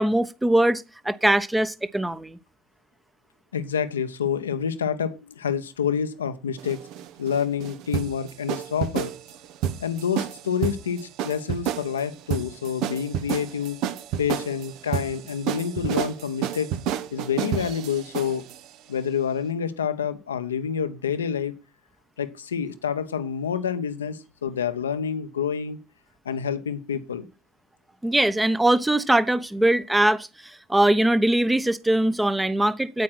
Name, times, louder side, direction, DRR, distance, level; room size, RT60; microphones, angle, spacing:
voice 1, 0.0-2.4 28.0-33.0, right 1 dB, 10° right, 1.0 m, -22 dB
voice 2, 3.5-6.8 7.2-9.1 9.8-13.8 14.2-16.7 17.1-18.4 18.9-21.5 22.2-25.8 26.2-27.3, left 7 dB, 80° left, 1.0 m, -28 dB
sound 1, 6.6-18.6, right 9 dB, 55° right, 1.2 m, -30 dB
9.1 x 8.5 x 6.1 m
figure-of-eight pair, 65°, 0 cm